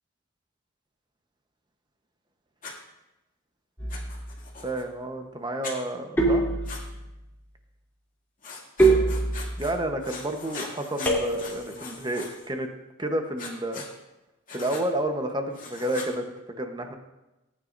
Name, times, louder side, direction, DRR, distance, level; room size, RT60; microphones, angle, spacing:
Writing, 2.6-2.7 3.9-4.8 5.6-5.8 6.6-6.8 8.4-9.7 10.0-12.5 13.4-13.9 14.5-14.8 15.5-16.1, left 4 dB, 40° left, 2.4 m, -40 dB
sound 1, 3.8-4.3 6.2-7.1 8.8-9.7 11.0-11.8, right 2 dB, 10° left, 2.9 m, -24 dB
voice 1, 4.6-6.4 9.6-12.7 13.0-13.8 14.5-16.3 16.6-17.0, right 1 dB, 20° right, 5 dB, 1.0 m, -30 dB
19.5 x 9.9 x 2.6 m, 1.0 s
head